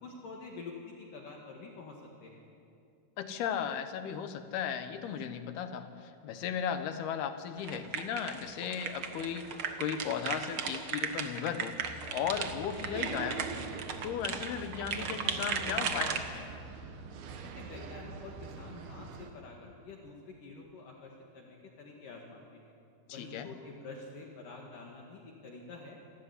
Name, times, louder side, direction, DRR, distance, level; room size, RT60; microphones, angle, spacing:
voice 1, 0.0-2.4 17.6-22.7 23.1-26.0, left 3 dB, 60° left, 0 dB, 3.3 m, -48 dB
voice 2, 3.2-13.7 14.0-16.4 23.1-23.5, left 8 dB, 75° left, 9 dB, 3.0 m, -36 dB
sound 1, 7.6-16.2, right 6 dB, 85° right, 1.1 m, -36 dB
sound 2, 11.8-19.3, right 4 dB, 70° right, 3.3 m, -44 dB
27.5 x 14.0 x 9.8 m, 2.5 s
omnidirectional pair, 4.7 m